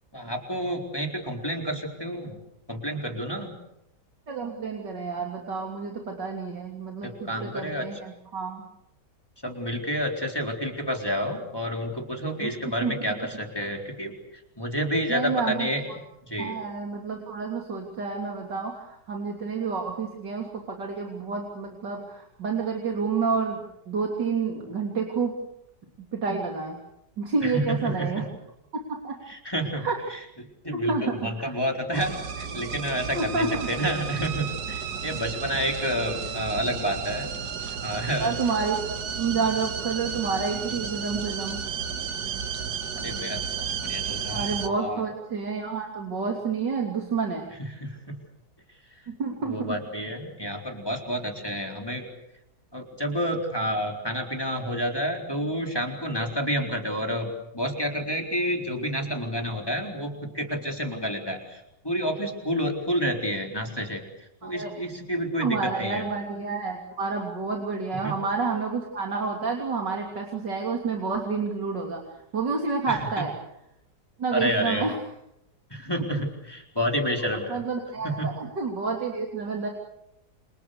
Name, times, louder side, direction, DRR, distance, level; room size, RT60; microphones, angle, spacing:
voice 1, 0.1-2.4 2.7-3.5 7.0-7.9 9.4-14.2 14.6-15.8 16.3-16.6 27.4-28.3 29.3-30.2 30.6-37.3 37.8-38.3 43.0-44.5 44.8-45.0 47.8-48.2 49.4-52.1 52.7-66.0 68.0-68.1 72.9-73.0 74.3-74.9 75.7-77.6 78.0-78.3, equal, 15° left, 2 dB, 4.2 m, -29 dB
voice 2, 4.3-8.6 12.4-12.5 12.8-13.0 15.1-16.0 16.4-23.6 23.9-25.4 26.1-26.8 27.2-28.3 28.7-29.2 29.8-30.0 30.7-31.6 33.1-33.7 38.2-41.6 44.3-47.4 49.1-49.8 50.5-50.6 64.4-64.7 65.4-73.3 74.2-75.0 77.5-79.7, right 4 dB, 85° right, 1 dB, 3.8 m, -29 dB
sound 1, 31.9-44.7, right 7 dB, 65° right, 1.9 m, -33 dB
29.0 x 28.0 x 6.8 m, 0.84 s
omnidirectional pair, 1.8 m